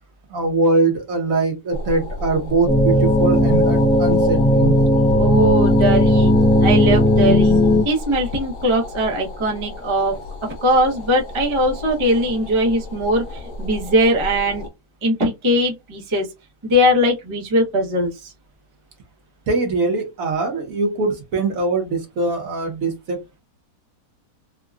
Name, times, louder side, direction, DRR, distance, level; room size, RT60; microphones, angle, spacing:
voice 1, 0.3-4.7 5.1-5.2 19.5-23.4, right 3 dB, 60° right, 1.3 m, -22 dB
sound 1, 1.7-14.7, left 2 dB, 55° left, 1.5 m, -32 dB
sound 2, 2.7-7.8, left 1 dB, 70° left, 1.3 m, -15 dB
voice 2, 5.2-6.3 6.6-7.5 7.8-14.7 15.0-16.3 16.6-18.3, equal, 30° right, 0.6 m, -20 dB
3.7 x 2.2 x 2.3 m
omnidirectional pair, 1.8 m